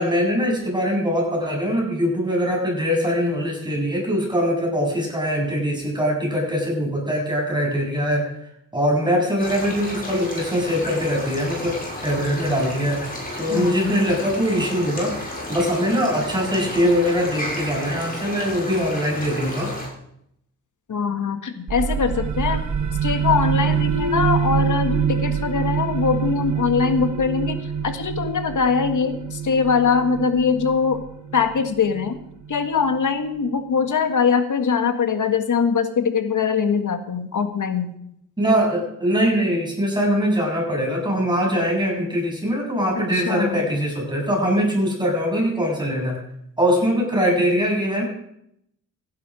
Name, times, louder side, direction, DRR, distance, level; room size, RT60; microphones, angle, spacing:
voice 1, 0.0-8.2 8.7-11.8 12.0-15.2 15.5-19.7 38.4-46.2 46.6-48.0, equal, 10° right, -1 dB, 7.6 m, -22 dB
sound 1, 9.4-19.9, left 1 dB, 25° left, 6.3 m, -32 dB
voice 2, 13.5-14.0 20.9-22.6 23.0-27.6 27.8-31.0 31.3-32.2 32.5-37.9 43.1-43.7, left 6 dB, 55° left, 8 dB, 1.8 m, -22 dB
sound 2, 21.7-33.1, right 7 dB, 50° right, 1.4 m, -25 dB
15.0 x 11.5 x 5.1 m, 0.75 s
cardioid pair, 70°, 36 cm